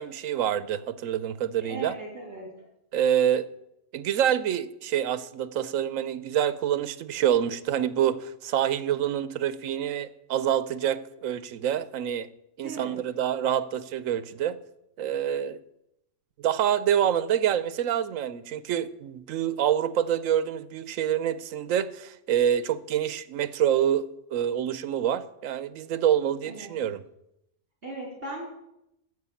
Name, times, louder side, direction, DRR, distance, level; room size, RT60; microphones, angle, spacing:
voice 1, 0.0-1.9 2.9-3.5 3.9-12.3 12.6-14.6 15.0-15.6 16.4-27.0, right 10 dB, 90° right, 15 dB, 1.0 m, -26 dB
voice 2, 1.6-2.7 12.6-13.0 26.5-26.8 27.8-28.4, right 2 dB, 50° right, -2 dB, 4.1 m, -38 dB
9.5 x 8.2 x 7.0 m, 0.83 s
omnidirectional pair, 1.3 m